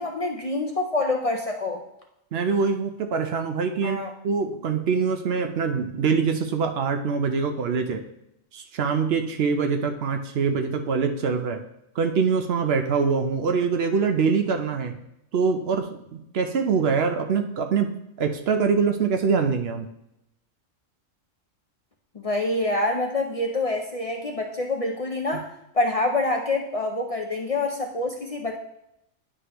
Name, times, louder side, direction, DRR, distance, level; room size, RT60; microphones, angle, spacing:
voice 1, 0.0-1.8 3.8-4.1 22.1-25.5 25.7-28.6, left 2 dB, 60° left, 2 dB, 0.3 m, -26 dB
voice 2, 2.3-4.0 4.2-8.0 8.5-11.6 12.0-15.0 15.3-19.9, right 5 dB, 60° right, 6 dB, 0.8 m, -24 dB
9.9 x 4.9 x 3.0 m, 0.84 s
omnidirectional pair, 1.4 m